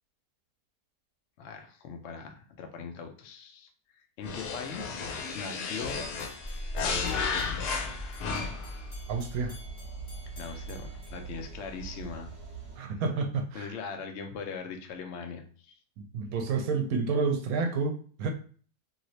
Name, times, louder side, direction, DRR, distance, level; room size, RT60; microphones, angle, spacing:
voice 1, 1.4-3.7 4.2-6.0 6.8-7.8 10.4-12.3 13.5-15.7, left 5 dB, 65° left, 4 dB, 0.7 m, -40 dB
sound 1, 4.2-8.8, left 5 dB, 85° left, 1.2 m, -33 dB
sound 2, 5.9-12.1, left 1 dB, 40° left, 1.1 m, -55 dB
sound 3, 6.4-12.8, right 1 dB, 30° right, 1.5 m, -40 dB
voice 2, 9.1-9.6 12.8-13.8 16.0-18.3, right 4 dB, 75° right, 5 dB, 1.0 m, -30 dB
3.1 x 2.8 x 2.7 m, 0.42 s
omnidirectional pair, 1.7 m